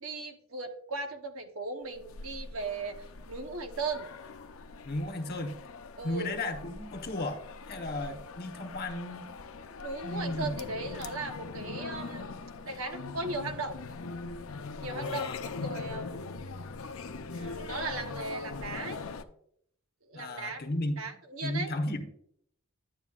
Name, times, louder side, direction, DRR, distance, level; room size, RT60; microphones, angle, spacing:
voice 1, 0.0-3.0 3.3-4.1 6.0-6.3 9.8-12.3 12.7-13.8 14.8-16.3 17.3-19.0 20.0-20.6 21.0-21.7, right 3 dB, 85° right, 5 dB, 1.0 m, -37 dB
sound 1, 1.9-19.2, left 4 dB, 90° left, 0.6 m, -41 dB
voice 2, 4.8-5.5 6.0-7.4 7.7-9.3 10.0-10.7 14.8-15.4 20.1-21.0 21.4-22.0, left 1 dB, 50° left, 5 dB, 1.1 m, -34 dB
10.0 x 9.1 x 2.4 m, 0.69 s
head